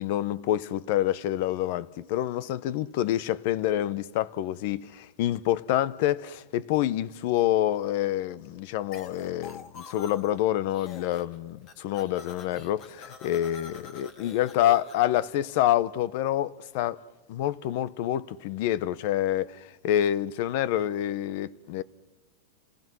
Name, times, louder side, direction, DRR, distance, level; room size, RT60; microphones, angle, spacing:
voice 1, 0.0-17.0 17.3-21.8, left 12 dB, 50° left, 0.9 m, -27 dB
sound 1, 8.9-10.4 10.7-11.4 11.6-15.2, left 5 dB, 30° left, 2.4 m, -46 dB
30.0 x 19.0 x 6.3 m
supercardioid pair, 160°, 0 cm